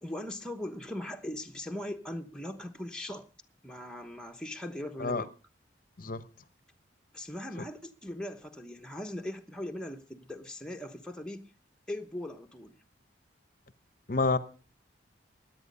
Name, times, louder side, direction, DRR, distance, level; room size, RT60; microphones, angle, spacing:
voice 1, 0.0-3.3 3.6-5.3 7.1-11.4 11.9-12.7, left 1 dB, 5° left, 1.0 m, -39 dB
voice 2, 14.1-14.4, left 3 dB, 45° left, 0.8 m, -28 dB
17.0 x 10.5 x 5.4 m
head